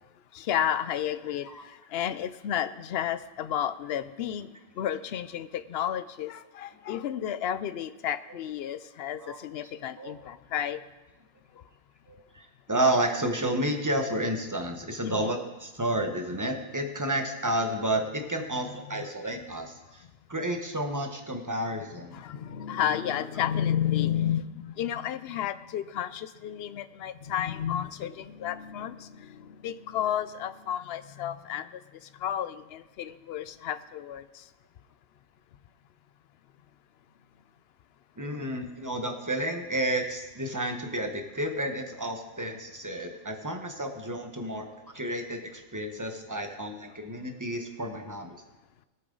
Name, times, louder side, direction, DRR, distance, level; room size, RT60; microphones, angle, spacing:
voice 1, 0.3-4.5 4.7-10.8 11.5-11.6 15.0-15.4 18.9-19.1 22.1-34.5 38.2-38.3 46.3-46.4, left 10 dB, 65° left, 13 dB, 0.7 m, -32 dB
voice 2, 12.1-20.0 20.3-22.2 38.2-44.7 44.9-48.4, right 1 dB, 15° right, 4 dB, 1.0 m, -31 dB
18.0 x 7.6 x 3.9 m, 1.1 s
omnidirectional pair, 1.3 m